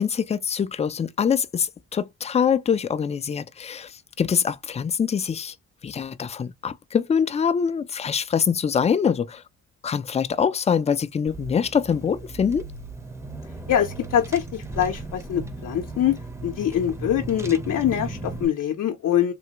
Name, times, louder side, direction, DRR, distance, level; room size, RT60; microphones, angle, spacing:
voice 1, 0.0-5.5 5.8-9.4 9.8-12.7, left 7 dB, 20° left, 0.4 m, -24 dB
Car / Engine, 11.3-18.5, right 3 dB, 10° right, 0.7 m, -36 dB
voice 2, 13.7-19.3, left 10 dB, 60° left, 0.6 m, -24 dB
3.4 x 2.0 x 2.8 m
cardioid pair, 90°, 30 cm